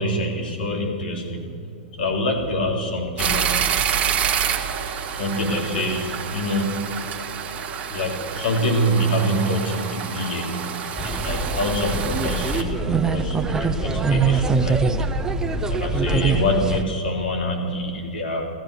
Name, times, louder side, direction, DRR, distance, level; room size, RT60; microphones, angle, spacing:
voice 1, 0.0-1.6 2.0-3.6 5.1-7.1 7.9-10.6 11.0-14.8 15.7-18.5, equal, 75° left, 1 dB, 3.8 m, -25 dB
sound 1, 3.2-12.6, right 8 dB, 30° right, 1.7 m, -27 dB
sound 2, 11.0-16.8, right 4 dB, 10° right, 0.9 m, -23 dB
15.5 x 14.5 x 6.6 m, 2.5 s
hypercardioid pair, 125°, 5 cm